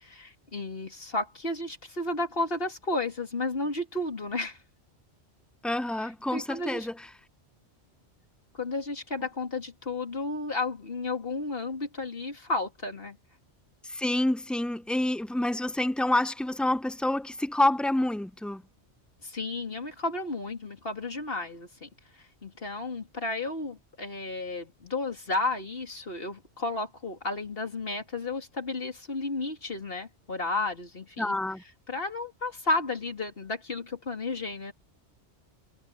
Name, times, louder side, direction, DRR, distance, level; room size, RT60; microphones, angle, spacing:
voice 1, 0.0-4.6 6.0-6.9 8.5-13.2 19.2-21.9 22.4-31.3 31.9-34.7, left 2 dB, 55° left, 3.2 m, -32 dB
voice 2, 5.6-6.9 13.9-18.6 31.2-31.6, left 1 dB, ahead, 0.4 m, -27 dB
omnidirectional pair, 1.2 m